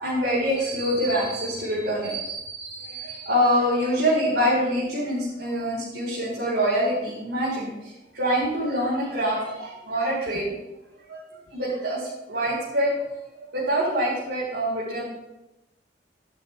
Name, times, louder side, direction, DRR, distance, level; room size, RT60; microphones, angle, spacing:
voice 1, 0.0-7.7 8.1-10.5 11.1-11.2 11.5-12.0 12.3-13.0 13.3-15.0, equal, 85° right, -8 dB, 4.6 m, -25 dB
17.0 x 12.0 x 2.4 m, 0.94 s
head